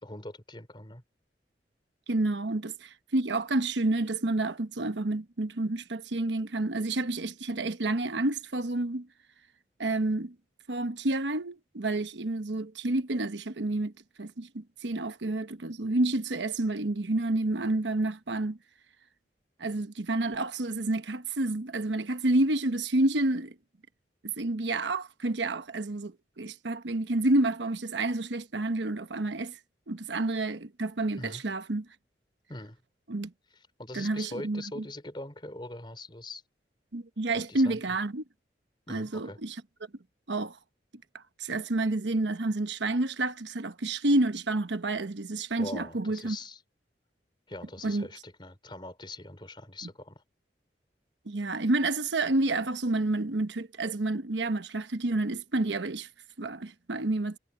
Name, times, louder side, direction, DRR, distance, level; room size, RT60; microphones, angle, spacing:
voice 1, 0.0-1.0 31.2-31.4 32.5-32.8 33.5-36.4 37.3-37.8 38.9-39.4 45.5-46.6 47.5-50.2, left 2 dB, 25° left, 3.7 m, -42 dB
voice 2, 2.1-9.1 9.8-10.3 10.7-13.9 14.2-18.6 19.6-23.5 24.4-29.6 29.9-31.8 33.1-33.3 33.9-34.8 36.9-38.2 38.9-39.6 40.3-40.6 41.1-46.4 47.8-48.1 49.8-49.9 51.3-56.1 56.4-57.4, right 2 dB, 90° right, 1.1 m, -29 dB
head